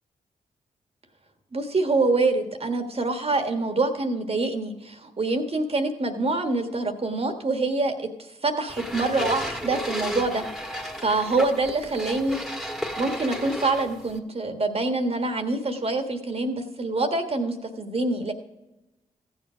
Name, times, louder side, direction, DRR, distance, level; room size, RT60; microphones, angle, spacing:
voice 1, 1.5-8.1 8.4-12.4 13.0-18.3, right 3 dB, 40° right, 6 dB, 1.5 m, -25 dB
sound 1, 8.7-14.2, equal, ahead, 1.6 m, -33 dB
14.5 x 7.6 x 5.0 m, 1.0 s
supercardioid pair, 45°, 15 cm